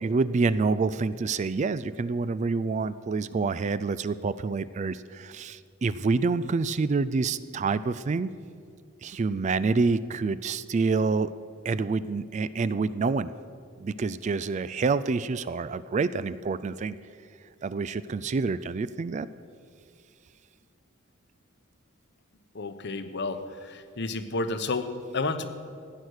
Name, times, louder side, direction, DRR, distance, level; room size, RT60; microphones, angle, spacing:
voice 1, 0.0-8.3 9.0-11.3 11.6-13.3 13.8-17.0 17.6-19.3, right 4 dB, 35° right, 15 dB, 0.3 m, -27 dB
voice 2, 22.5-25.5, left 3 dB, 55° left, 10 dB, 0.9 m, -31 dB
15.5 x 9.6 x 6.5 m, 2.3 s
head